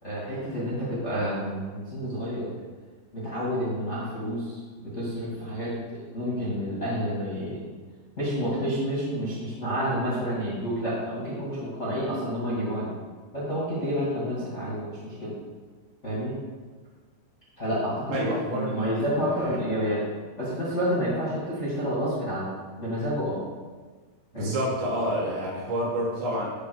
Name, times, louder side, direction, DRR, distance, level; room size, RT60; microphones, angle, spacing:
voice 1, 0.0-2.5 3.1-4.6 4.9-5.8 6.1-7.6 8.2-12.9 13.3-15.3 16.0-16.4 17.6-18.2 18.5-20.0 20.4-22.5 22.8-23.4 24.3-24.5, equal, 35° left, -8 dB, 1.0 m, -29 dB
voice 2, 18.1-18.9 19.2-19.6 24.3-26.5, equal, 70° right, -6 dB, 4.2 m, -28 dB
9.6 x 3.9 x 6.2 m, 1.4 s
omnidirectional pair, 5.1 m